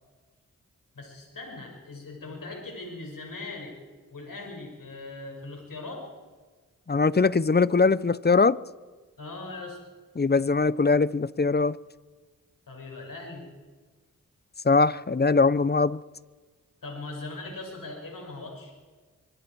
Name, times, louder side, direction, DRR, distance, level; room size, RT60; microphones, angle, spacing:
voice 1, 0.9-3.7 4.1-6.1 9.2-9.8 12.7-13.4 16.8-18.7, left 2 dB, 80° left, 6.0 m, -40 dB
voice 2, 6.9-8.6 10.2-11.8 14.6-16.0, left 4 dB, 30° left, 0.7 m, -21 dB
25.5 x 23.5 x 4.7 m
cardioid pair, 40°, 33 cm